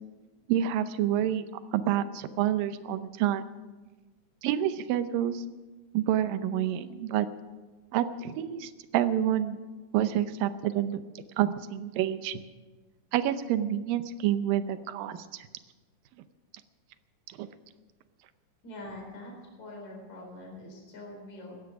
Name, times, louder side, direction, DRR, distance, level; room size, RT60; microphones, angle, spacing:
voice 1, 0.5-1.4 1.7-3.4 4.4-5.4 5.9-7.3 7.9-9.6 9.9-11.0 11.4-12.4 13.1-15.5 17.3-17.5, right 11 dB, 90° right, 12 dB, 2.5 m, -28 dB
voice 2, 18.6-19.3 19.6-21.6, left 1 dB, 55° left, -1 dB, 5.3 m, -44 dB
17.0 x 13.0 x 6.0 m, 1.3 s
omnidirectional pair, 3.9 m